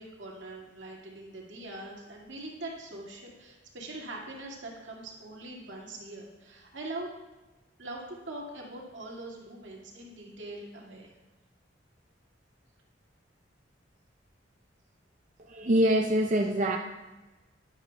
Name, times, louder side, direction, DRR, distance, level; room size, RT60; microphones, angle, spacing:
voice 1, 0.0-7.1 7.8-11.1, right 2 dB, 80° right, -2 dB, 2.1 m, -42 dB
voice 2, 15.4-16.8, right 1 dB, 40° right, 2 dB, 0.6 m, -25 dB
11.5 x 10.5 x 2.3 m, 1.1 s
head